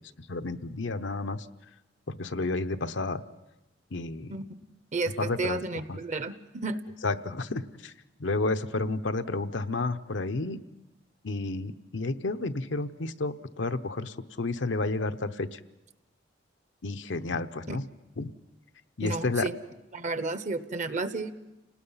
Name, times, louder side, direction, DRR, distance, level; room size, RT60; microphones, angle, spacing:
voice 1, 0.3-1.5 2.1-3.2 3.9-4.3 5.2-5.6 5.9-6.0 7.0-7.9 8.2-10.6 11.2-15.6 16.8-17.8 18.2-18.3 19.0-19.5, left 3 dB, 85° left, 8 dB, 0.8 m, -31 dB
voice 2, 4.9-6.8 17.7-17.8 19.0-19.5 19.9-21.3, right 3 dB, 40° right, 13 dB, 0.9 m, -32 dB
30.0 x 19.0 x 5.6 m, 0.97 s
head